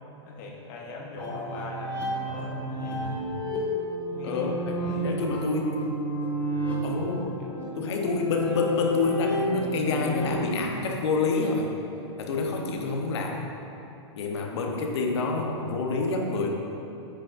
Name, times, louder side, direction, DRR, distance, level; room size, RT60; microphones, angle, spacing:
voice 1, 0.2-3.0 4.1-4.5 4.8-5.3 6.2-6.4 7.4-8.0, left 3 dB, 40° left, -1 dB, 1.1 m, -41 dB
sound 1, 1.2-10.4, right 1 dB, 10° left, 1.0 m, -32 dB
voice 2, 4.2-4.7 5.0-5.8 6.8-7.4 7.8-11.7 12.2-13.5 14.1-16.5, left 3 dB, 65° left, 2 dB, 1.0 m, -27 dB
8.5 x 6.0 x 2.6 m, 2.9 s
hypercardioid pair, 150°, 15 cm